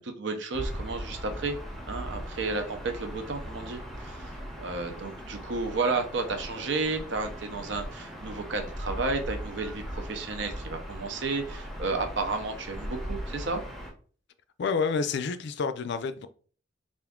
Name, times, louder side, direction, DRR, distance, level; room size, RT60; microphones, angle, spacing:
voice 1, 0.0-1.6 1.9-13.6, right 3 dB, 70° right, 0.7 m, -32 dB
Gull seagull / Ocean, 0.5-13.9, equal, ahead, 0.7 m, -39 dB
voice 2, 14.6-16.3, left 5 dB, 65° left, 0.4 m, -29 dB
3.6 x 2.5 x 3.5 m
head